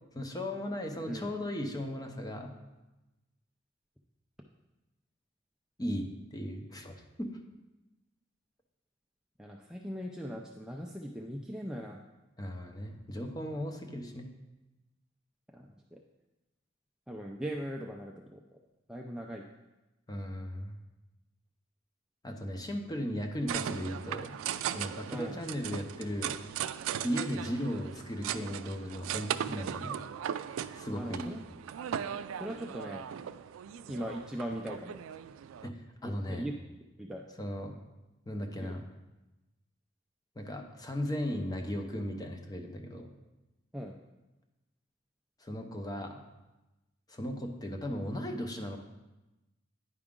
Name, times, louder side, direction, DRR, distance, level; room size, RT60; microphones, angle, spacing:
voice 1, 0.1-2.5 5.8-7.4 12.4-14.3 20.1-20.8 22.2-24.4 24.7-26.3 27.0-30.0 30.7-31.4 35.6-36.5 37.4-37.8 38.3-38.9 40.4-43.1 45.4-46.2 47.1-48.8, equal, 20° left, 4 dB, 0.7 m, -36 dB
voice 2, 9.4-12.0 15.5-16.0 17.1-18.4 18.9-19.4 25.1-25.4 30.9-31.4 32.4-33.1 33.9-35.0 36.0-36.5 37.0-37.2 38.6-38.7 43.7-43.9, equal, 5° right, 0 dB, 0.3 m, -39 dB
sound 1, 23.5-35.7, right 9 dB, 85° right, 0.3 m, -38 dB
9.8 x 4.9 x 3.7 m, 1.0 s
head